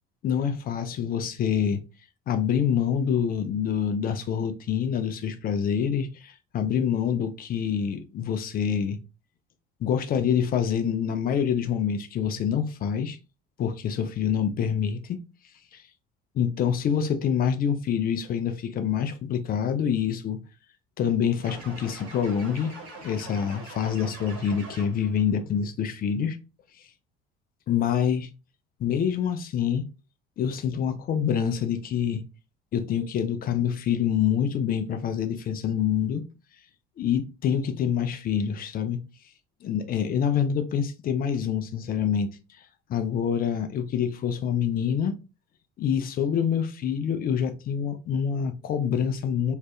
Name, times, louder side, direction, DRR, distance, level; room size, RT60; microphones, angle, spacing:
voice 1, 0.2-1.8 2.3-9.0 9.8-13.2 13.6-15.2 15.7-15.8 16.3-20.4 21.0-22.7 23.0-26.4 27.7-28.3 28.8-29.9 30.4-32.2 32.7-36.2 37.0-39.0 39.6-42.3 42.9-45.2 45.8-49.6, left 8 dB, 30° left, 0.4 m, -26 dB
sound 1, 21.4-25.2, right 2 dB, 65° right, 1.1 m, -43 dB
2.5 x 2.4 x 3.2 m
figure-of-eight pair, 55°, 32 cm